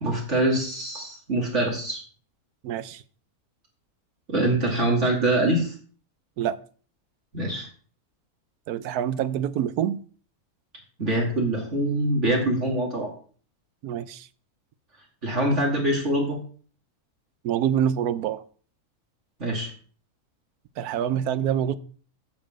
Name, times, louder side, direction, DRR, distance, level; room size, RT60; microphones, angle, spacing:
voice 1, 0.0-2.0 4.3-5.7 7.3-7.7 11.0-13.1 15.2-16.4 19.4-19.7, right 1 dB, 50° right, -2 dB, 2.5 m, -24 dB
voice 2, 2.6-3.0 6.4-6.6 8.7-10.0 13.8-14.3 17.4-18.4 20.8-21.8, right 9 dB, 85° right, 15 dB, 1.2 m, -26 dB
9.0 x 5.0 x 7.6 m, 0.43 s
omnidirectional pair, 1.6 m